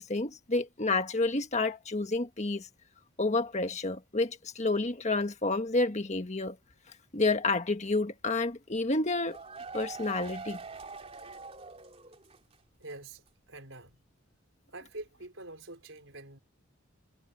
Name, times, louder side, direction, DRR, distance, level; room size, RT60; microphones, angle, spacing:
voice 1, 0.0-2.7 3.2-6.6 7.1-9.4 9.7-10.6, left 3 dB, 35° left, 1.4 m, -29 dB
sound 1, 8.9-12.5 12.8-12.9 13.3-13.4, right 4 dB, 30° right, 3.4 m, -44 dB
voice 2, 12.8-14.0 14.7-16.4, right 2 dB, 70° right, 5.0 m, -46 dB
head